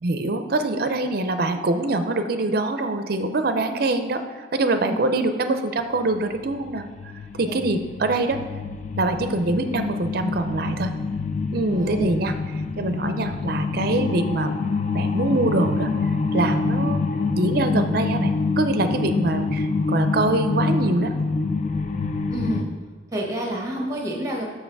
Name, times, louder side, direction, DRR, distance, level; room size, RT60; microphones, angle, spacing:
voice 1, 0.0-4.2 4.5-6.8 7.3-8.4 9.0-10.9 11.5-12.3 12.8-14.5 14.9-15.9 16.3-17.0 17.4-21.1, right 2 dB, 50° right, 8 dB, 0.5 m, -24 dB
sound 1, 6.0-22.6, left 4 dB, 40° left, 0.4 m, -26 dB
voice 2, 11.7-12.1 22.3-22.7 23.1-24.4, right 1 dB, 15° right, 0 dB, 1.1 m, -28 dB
6.5 x 6.1 x 4.6 m, 1.4 s
head